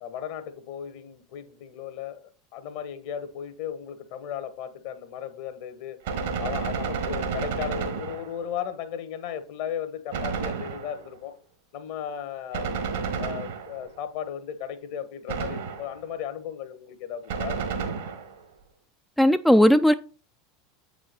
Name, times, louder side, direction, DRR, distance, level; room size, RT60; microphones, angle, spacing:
voice 1, 0.0-6.0 6.4-11.4 11.7-12.7 13.2-17.6, left 9 dB, 55° left, 1.3 m, -36 dB
Gunshot gunfire, 6.0-8.6 10.1-11.2 12.5-14.0 15.3-16.1 17.3-18.4, right 5 dB, 65° right, 1.4 m, -31 dB
voice 2, 19.2-19.9, equal, ahead, 0.4 m, -17 dB
7.7 x 4.9 x 4.1 m
figure-of-eight pair, 80°, 0 cm